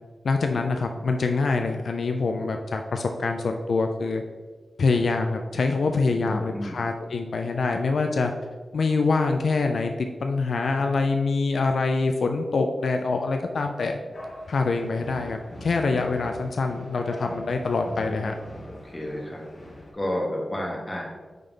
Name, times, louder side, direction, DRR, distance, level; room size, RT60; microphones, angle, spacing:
voice 1, 0.2-4.2 4.8-8.3 8.7-14.0 14.5-18.3, left 3 dB, 75° left, 4 dB, 0.4 m, -25 dB
voice 2, 6.2-6.9 17.9-19.5 19.9-21.1, left 1 dB, 15° left, -3 dB, 1.5 m, -32 dB
sound 1, 14.1-19.9, left 1 dB, 50° left, 1.6 m, -42 dB
9.1 x 3.4 x 3.7 m, 1.4 s
wide cardioid pair, 135°, 0 cm